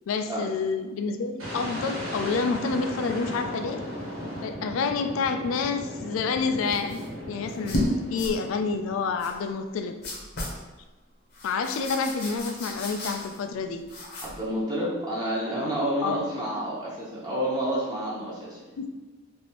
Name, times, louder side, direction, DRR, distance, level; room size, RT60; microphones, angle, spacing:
voice 1, 0.1-3.8 4.4-10.0 11.4-13.8 16.0-16.2 18.8-18.9, left 4 dB, 75° left, 8 dB, 0.3 m, -28 dB
sound 1, 1.4-9.3, equal, 85° right, 1.4 m, -37 dB
sound 2, 6.6-7.1 7.5-7.9 8.2-8.4 9.2-9.4 10.0-10.6 11.3-13.5 13.8-14.4, left 1 dB, 55° left, 0.7 m, -33 dB
voice 2, 14.2-18.6, equal, 20° right, -7 dB, 0.7 m, -29 dB
3.3 x 2.6 x 2.9 m, 1.2 s
head